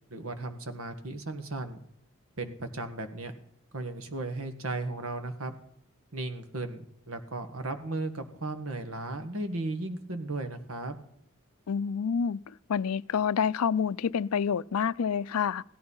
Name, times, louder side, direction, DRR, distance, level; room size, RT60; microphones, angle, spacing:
voice 1, 0.1-1.8 2.4-3.3 3.7-5.6 6.1-11.0, right 2 dB, 70° right, 1.6 m, -35 dB
voice 2, 11.7-12.4 12.7-15.6, left 7 dB, 85° left, 0.4 m, -28 dB
16.5 x 11.0 x 5.6 m
head